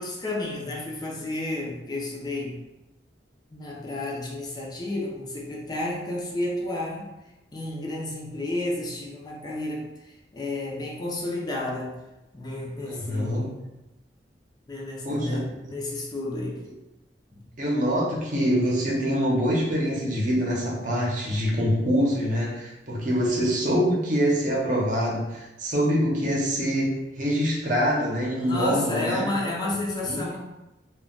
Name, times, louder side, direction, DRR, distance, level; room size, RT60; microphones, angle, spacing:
voice 1, 0.0-2.6 3.5-7.1 7.5-9.9 10.3-11.9 12.3-13.5 14.7-16.6 17.3-17.5 28.4-30.4, left 2 dB, 25° left, -3 dB, 0.5 m, -31 dB
voice 2, 12.8-13.5 15.0-15.5 17.6-29.3 30.1-30.3, equal, 45° right, -3 dB, 0.8 m, -25 dB
2.3 x 2.2 x 3.7 m, 1.0 s
head